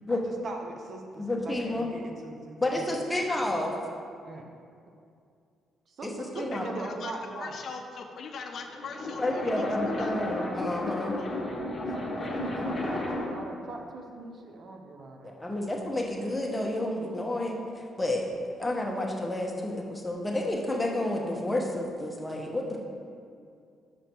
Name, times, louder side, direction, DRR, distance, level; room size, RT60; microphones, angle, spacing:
voice 1, 0.1-3.0 4.2-4.4 5.9-7.6 11.9-12.0 12.4-15.3, right 2 dB, 55° right, 3 dB, 0.7 m, -41 dB
voice 2, 1.2-1.9 2.6-3.8 6.0-6.6 9.2-11.2 12.5-12.7 15.2-18.2 18.6-22.8, left 1 dB, 10° left, 0 dB, 1.0 m, -30 dB
voice 3, 6.5-9.4 10.0-10.1 11.2-11.3, left 5 dB, 60° left, 4 dB, 0.6 m, -41 dB
sound 1, 8.6-13.4, left 1 dB, 30° left, 1.3 m, -33 dB
6.1 x 5.0 x 4.5 m, 2.3 s
cardioid pair, 90°, 0 cm